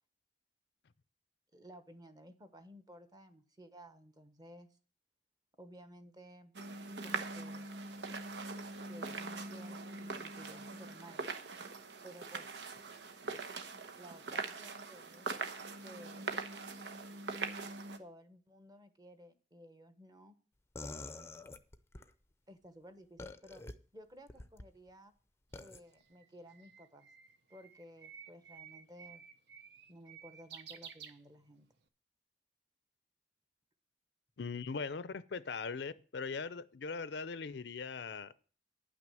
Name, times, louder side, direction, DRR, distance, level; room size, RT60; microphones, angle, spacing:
voice 1, 1.5-4.7 5.6-6.5 7.0-7.7 8.8-11.3 12.0-12.8 14.0-15.3 15.8-16.3 18.0-20.4 22.5-23.6 23.9-25.1 25.6-27.1 27.5-29.2 29.9-31.7, equal, 25° right, 10 dB, 1.1 m, -55 dB
sound 1, 6.5-18.0, right 3 dB, 85° right, 1.1 m, -42 dB
sound 2, 20.7-22.1 23.2-23.7 24.3-24.7 25.5-25.8, left 2 dB, 15° left, 0.6 m, -46 dB
Bird, 25.7-31.8, right 7 dB, 70° right, 1.0 m, -54 dB
voice 2, 34.4-38.3, left 4 dB, 75° left, 16 dB, 0.6 m, -40 dB
9.9 x 6.1 x 7.7 m, 0.40 s
head